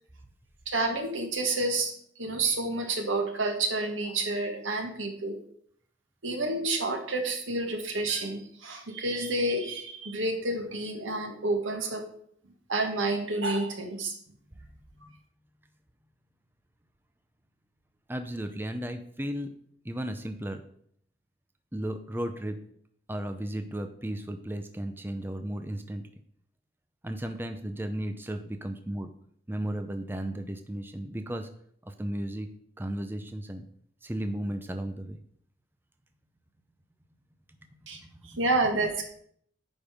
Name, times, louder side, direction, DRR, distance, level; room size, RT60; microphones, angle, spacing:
voice 1, 0.6-5.4 6.2-12.0 12.7-14.1 37.9-39.1, right 2 dB, 90° right, 4 dB, 1.7 m, -29 dB
voice 2, 18.1-19.5 19.8-20.6 21.7-22.6 23.1-26.0 27.0-29.1 29.5-31.5 31.8-32.5 32.8-33.7 34.0-35.2 38.0-38.3, right 1 dB, 10° right, 7 dB, 0.5 m, -34 dB
9.2 x 5.3 x 5.2 m, 0.65 s
head